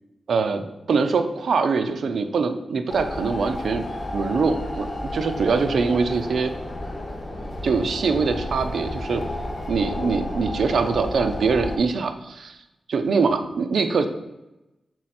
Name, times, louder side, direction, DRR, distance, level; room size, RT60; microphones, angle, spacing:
voice 1, 0.3-3.8 4.1-4.9 5.1-6.5 7.6-9.3 9.7-12.6 12.9-14.1, right 4 dB, 80° right, 8 dB, 0.6 m, -23 dB
sound 1, 2.9-11.8, left 1 dB, 35° left, 1.0 m, -32 dB
6.3 x 4.2 x 4.2 m, 0.98 s
wide cardioid pair, 100°, 0 cm